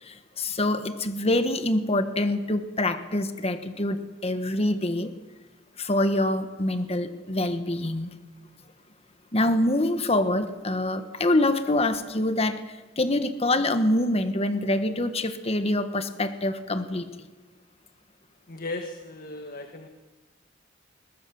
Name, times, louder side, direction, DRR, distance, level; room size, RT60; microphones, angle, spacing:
voice 1, 0.0-5.1 5.8-8.1 9.3-17.0, left 1 dB, 35° left, 9 dB, 1.5 m, -25 dB
voice 2, 18.5-19.9, left 2 dB, 50° left, 5 dB, 1.6 m, -36 dB
21.5 x 20.0 x 7.2 m, 1.3 s
head